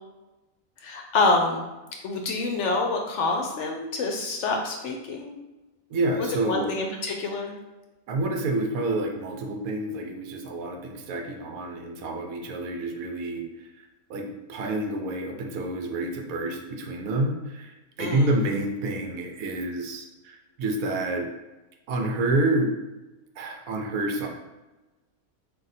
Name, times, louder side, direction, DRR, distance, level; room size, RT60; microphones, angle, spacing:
voice 1, 0.8-1.6 2.0-5.4 6.5-7.5 18.0-18.3, left 3 dB, 65° left, 2 dB, 0.8 m, -26 dB
voice 2, 5.9-6.9 8.1-21.3 21.9-22.7 23.4-24.3, right 2 dB, 80° right, 2 dB, 1.1 m, -28 dB
3.7 x 2.6 x 4.1 m, 1.1 s
omnidirectional pair, 1.5 m